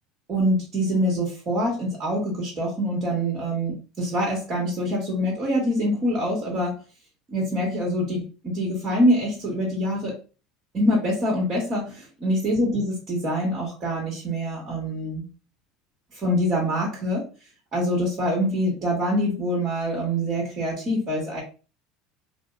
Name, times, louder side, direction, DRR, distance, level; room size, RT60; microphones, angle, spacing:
voice 1, 0.3-6.8 7.3-10.1 10.7-15.2 16.1-17.3 17.7-21.4, equal, 35° right, -4 dB, 1.3 m, -25 dB
2.8 x 2.1 x 3.5 m, 0.34 s
supercardioid pair, 115°, 0 cm